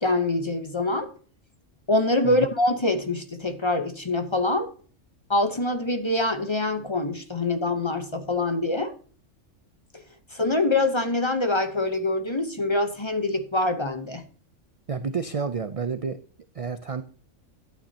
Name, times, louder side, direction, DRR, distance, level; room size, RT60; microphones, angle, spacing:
voice 1, 0.0-1.1 1.9-4.7 5.3-8.9 9.9-10.0 10.3-14.2, left 2 dB, 25° left, 0.8 m, -25 dB
voice 2, 14.9-16.2 16.5-17.0, right 5 dB, 50° right, 0.4 m, -29 dB
11.5 x 9.3 x 2.8 m
omnidirectional pair, 1.3 m